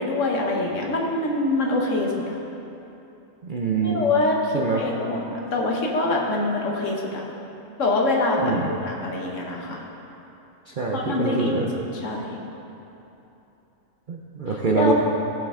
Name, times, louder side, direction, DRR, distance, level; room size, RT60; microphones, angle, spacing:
voice 1, 0.0-2.4 3.8-7.2 7.8-9.9 10.9-12.4 14.8-14.9, left 2 dB, 60° left, -1 dB, 1.4 m, -25 dB
voice 2, 3.5-4.0 4.5-4.8 8.4-8.7 10.7-11.7 14.1-14.9, right 4 dB, 50° right, -2 dB, 0.6 m, -24 dB
15.5 x 5.6 x 3.6 m, 2.9 s
omnidirectional pair, 1.5 m